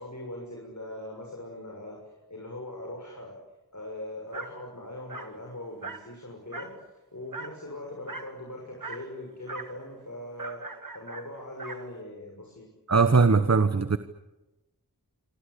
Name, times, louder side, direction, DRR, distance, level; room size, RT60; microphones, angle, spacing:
voice 1, 0.0-2.0 2.3-3.4 3.7-6.8 7.1-10.6 10.9-12.7, left 1 dB, 50° left, 0 dB, 6.8 m, -40 dB
Dog, 4.3-4.6 5.1-5.4 5.8-6.1 6.5-6.8 7.3-7.6 8.1-8.4 8.8-9.1 9.5-9.8 10.4-11.9, right 3 dB, 60° right, 2.3 m, -40 dB
voice 2, 12.9-14.0, right 4 dB, 45° right, 11 dB, 1.2 m, -20 dB
27.5 x 25.0 x 8.5 m, 1.0 s
wide cardioid pair, 50°, 36 cm